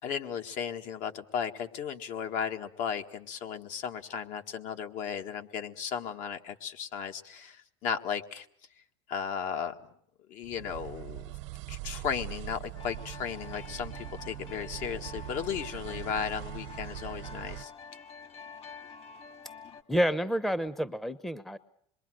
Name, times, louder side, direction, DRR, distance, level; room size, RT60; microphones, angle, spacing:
voice 1, 0.0-8.5 9.1-9.7 10.3-11.2 11.7-17.7, left 7 dB, 60° left, 6 dB, 1.9 m, -35 dB
sound 1, 10.4-17.7, right 18 dB, 75° right, 1.1 m, -42 dB
sound 2, 12.7-19.8, left 6 dB, 40° left, 1.9 m, -48 dB
voice 2, 19.9-21.6, equal, ahead, 15 dB, 0.9 m, -29 dB
26.5 x 22.5 x 6.4 m, 0.68 s
supercardioid pair, 100°, 15 cm